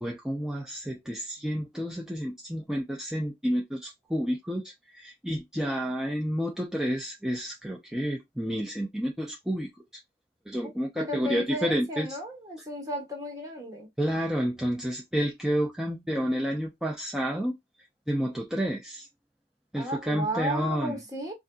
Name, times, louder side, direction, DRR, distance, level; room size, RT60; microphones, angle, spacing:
voice 1, 0.0-9.7 10.5-12.2 14.0-17.5 18.1-19.1 19.7-21.0, equal, 5° right, 0.5 m, -30 dB
voice 2, 11.0-13.9 19.8-21.3, equal, 20° right, 1.2 m, -34 dB
4.0 x 2.5 x 2.3 m
head